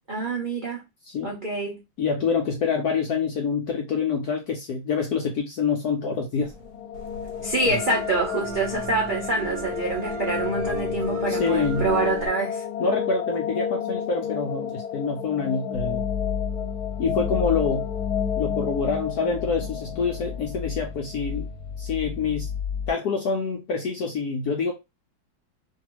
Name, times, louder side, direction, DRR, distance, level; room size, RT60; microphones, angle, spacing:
voice 1, 0.1-0.8 1.2-1.8 7.4-12.6, right 2 dB, 90° right, 0.4 m, -26 dB
voice 2, 2.0-6.5 7.4-7.8 11.3-11.9 12.8-16.0 17.0-17.9 18.4-21.5 21.8-22.5 22.9-24.7, left 5 dB, 70° left, 1.0 m, -26 dB
sound 1, 6.4-12.3, right 4 dB, 70° right, 1.0 m, -36 dB
sound 2, 6.5-21.4, left 8 dB, 85° left, 1.4 m, -31 dB
sound 3, 15.7-22.9, left 7 dB, 45° right, 0.6 m, -32 dB
3.0 x 2.7 x 2.9 m
omnidirectional pair, 2.2 m